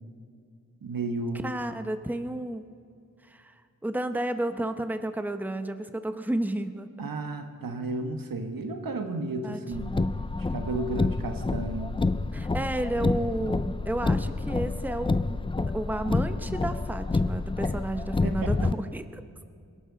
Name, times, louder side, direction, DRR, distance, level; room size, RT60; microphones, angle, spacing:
voice 1, 0.8-1.5 7.0-10.0 10.5-12.0 18.2-18.7, right 2 dB, 75° right, 6 dB, 1.4 m, -33 dB
voice 2, 1.4-2.6 3.3-3.5 3.8-6.9 9.4-10.1 12.3-19.2, right 1 dB, 5° right, 9 dB, 0.9 m, -32 dB
Car, 9.7-18.7, left 3 dB, 15° left, 0.4 m, -28 dB
22.0 x 12.5 x 4.0 m, 2.3 s
cardioid pair, 45°, 34 cm